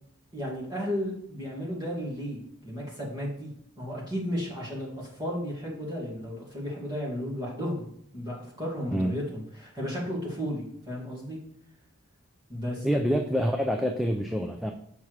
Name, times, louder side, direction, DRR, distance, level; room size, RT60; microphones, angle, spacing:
voice 1, 0.3-2.4 2.6-3.5 3.8-7.9 8.1-11.4 12.5-12.9 13.4-13.5, equal, 20° right, -5 dB, 2.0 m, -34 dB
voice 2, 12.8-14.7, equal, ahead, 2 dB, 0.3 m, -26 dB
7.1 x 5.9 x 3.2 m, 0.69 s
head